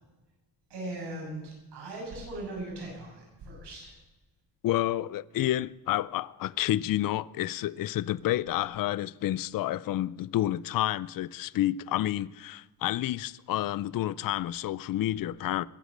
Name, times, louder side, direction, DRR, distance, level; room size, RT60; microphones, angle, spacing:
voice 1, 0.7-3.9, right 2 dB, 85° right, 6.7 m, -39 dB
voice 2, 4.6-15.6, left 14 dB, 60° left, 0.5 m, -29 dB
21.0 x 8.1 x 6.6 m
wide cardioid pair, 155°, 39 cm